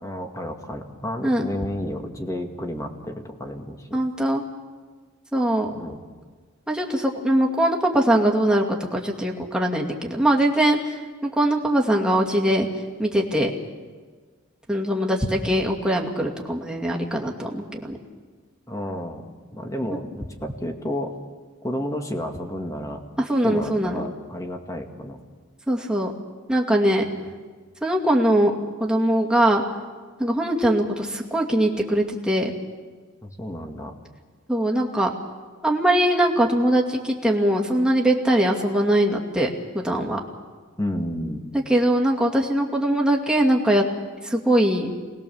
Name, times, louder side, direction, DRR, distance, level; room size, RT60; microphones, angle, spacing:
voice 1, 0.0-4.0 5.7-6.0 18.7-21.1 21.6-23.0 23.4-25.2 27.0-27.2 33.2-33.9 40.8-41.5, left 1 dB, 15° left, 4 dB, 2.0 m, -31 dB
voice 2, 3.9-4.4 5.3-5.7 6.7-10.8 11.2-12.7 13.0-13.5 14.7-18.0 23.3-24.0 25.7-26.1 26.5-27.0 27.8-28.5 28.8-29.6 30.2-32.5 34.5-35.1 35.6-39.5 39.7-40.2 41.7-43.8 44.2-44.9, right 1 dB, 5° right, -1 dB, 2.4 m, -21 dB
27.0 x 20.0 x 7.2 m, 1.5 s
head